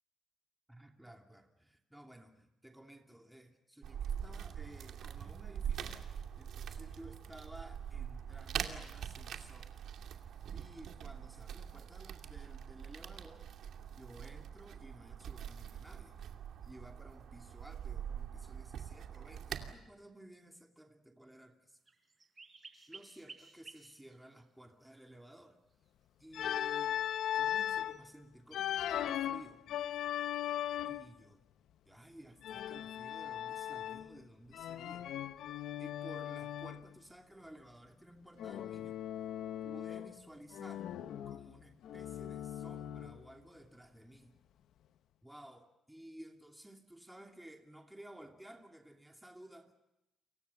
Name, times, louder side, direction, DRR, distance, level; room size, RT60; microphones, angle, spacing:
voice 1, 0.7-6.0 6.4-9.8 10.5-13.5 13.9-16.2 16.6-21.8 22.9-25.6 26.2-27.0 27.3-29.7 30.8-31.4 31.8-35.1 35.8-39.0 39.6-40.9 41.2-44.3 45.2-49.7, right 1 dB, 5° right, 3 dB, 2.8 m, -55 dB
sound 1, 3.8-19.7, right 8 dB, 70° right, 2.5 m, -43 dB
sound 2, 21.9-24.3 25.0-25.1 27.3-28.0, right 3 dB, 30° right, 4.2 m, -55 dB
Organ, 26.3-28.0 28.5-31.2 32.4-34.2 34.5-36.8 38.4-40.2 40.5-43.2, left 11 dB, 75° left, 0.9 m, -38 dB
29.5 x 24.0 x 7.1 m, 0.92 s
cardioid pair, 90°, 0 cm